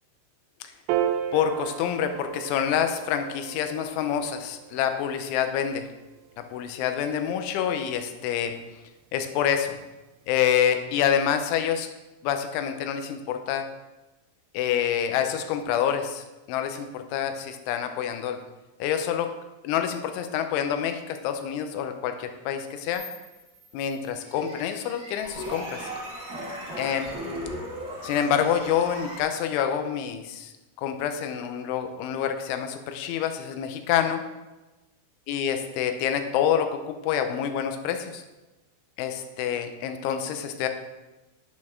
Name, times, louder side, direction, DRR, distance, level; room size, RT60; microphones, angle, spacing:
Piano, 0.9-7.5, right 10 dB, 90° right, 3.3 m, -35 dB
voice 1, 1.3-5.9 6.5-8.5 9.1-9.8 10.3-11.9 12.2-13.7 14.5-18.4 18.8-19.3 19.6-23.0 23.7-25.9 26.8-27.1 28.0-30.5 30.8-34.2 35.3-38.2 39.0-40.7, left 9 dB, 85° left, 7 dB, 3.0 m, -27 dB
sound 1, 22.9-23.8 24.2-29.2, equal, 30° right, 1.5 m, -38 dB
10.5 x 8.6 x 3.7 m, 1.1 s
omnidirectional pair, 5.8 m